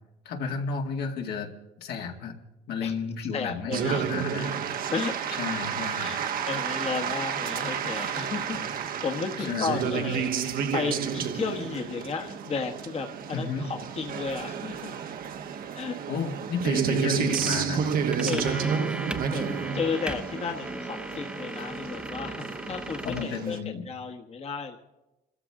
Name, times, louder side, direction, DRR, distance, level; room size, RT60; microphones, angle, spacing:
voice 1, 0.3-1.5 1.8-2.4 2.7-4.6 5.4-6.1 8.5-8.7 9.4-10.2 13.3-13.7 16.1-17.8 18.2-18.3 23.0-23.9, left 5 dB, 75° left, 1 dB, 2.2 m, -32 dB
voice 2, 3.3-4.2 4.9-5.2 6.0-6.2 6.4-8.6 9.0-14.9 15.7-15.9 18.2-18.8 19.3-24.8, left 5 dB, 40° left, 3 dB, 1.3 m, -33 dB
sound 1, 3.7-23.6, right 7 dB, 60° right, 1.1 m, -31 dB
sound 2, 17.3-23.2, right 1 dB, 5° right, 0.8 m, -37 dB
28.5 x 13.5 x 3.7 m, 1.0 s
cardioid pair, 110°, 17 cm